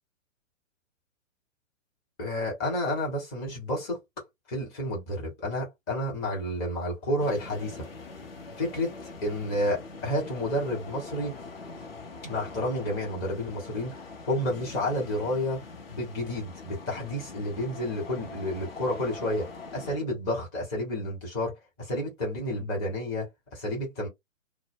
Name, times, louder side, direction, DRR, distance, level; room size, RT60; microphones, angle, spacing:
voice 1, 2.2-4.0 4.5-7.9 8.6-11.3 12.2-24.1, left 1 dB, 15° left, 0.8 m, -30 dB
sound 1, 7.2-20.0, left 3 dB, 45° left, 0.8 m, -43 dB
2.0 x 2.0 x 3.5 m
figure-of-eight pair, 130°, 40 cm